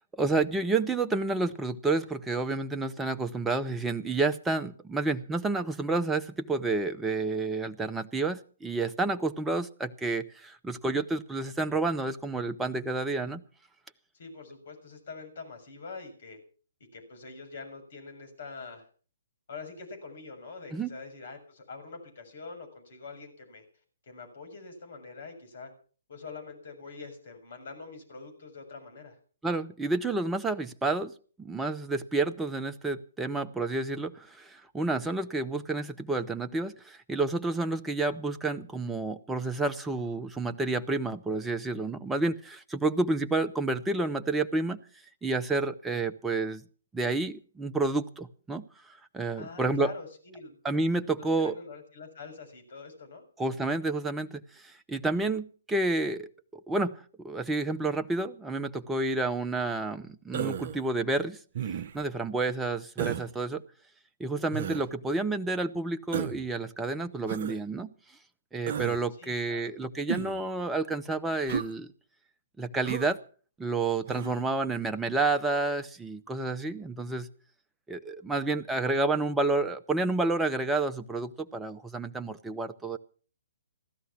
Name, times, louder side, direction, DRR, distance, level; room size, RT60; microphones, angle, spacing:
voice 1, 0.1-13.4 20.7-20.9 29.4-31.1 31.4-44.8 45.2-46.6 46.9-48.6 49.1-49.9 50.6-51.5 53.4-61.4 61.9-63.6 64.2-67.9 68.5-71.9 72.6-73.2 73.6-77.3 77.9-83.0, right 3 dB, 10° right, 7 dB, 0.8 m, -30 dB
voice 2, 14.1-16.4 16.9-18.9 19.5-23.6 24.0-25.7 26.1-29.2 49.4-50.6 51.2-53.2 69.2-69.7, left 4 dB, 60° left, 5 dB, 6.8 m, -44 dB
Human voice, 60.3-60.8 61.5-62.1 63.0-63.3 64.5-64.9 66.1-66.5 67.3-67.6 68.7-69.0 70.1-70.4 71.5-71.7 72.8-73.1 74.1-74.4, right 8 dB, 50° right, 0.7 m, -33 dB
16.0 x 12.5 x 5.9 m, 0.41 s
figure-of-eight pair, 130°, 0 cm